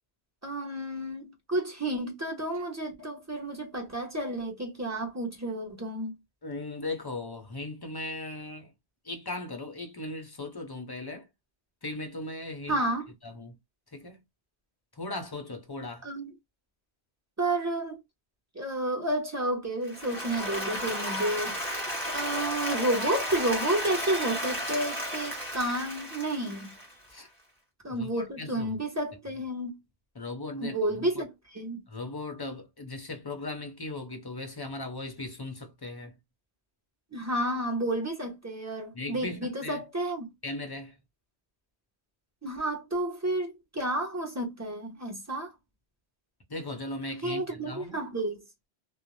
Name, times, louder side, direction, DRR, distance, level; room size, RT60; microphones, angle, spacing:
voice 1, 0.4-6.1 12.7-13.1 16.0-16.3 17.4-18.0 18.5-21.6 22.1-26.7 27.8-29.8 30.6-31.8 37.1-40.3 42.4-45.5 47.2-48.4, right 1 dB, 15° right, 0.9 m, -31 dB
voice 2, 6.4-8.7 9.0-11.3 11.8-12.8 13.2-13.6 13.9-14.2 14.9-16.1 27.1-27.3 27.9-28.8 30.1-31.2 31.9-36.1 38.9-39.8 40.4-41.0 46.5-48.0, left 2 dB, 30° left, 0.4 m, -38 dB
Applause, 19.9-27.1, equal, ahead, 1.4 m, -33 dB
2.5 x 2.0 x 3.1 m
omnidirectional pair, 1.1 m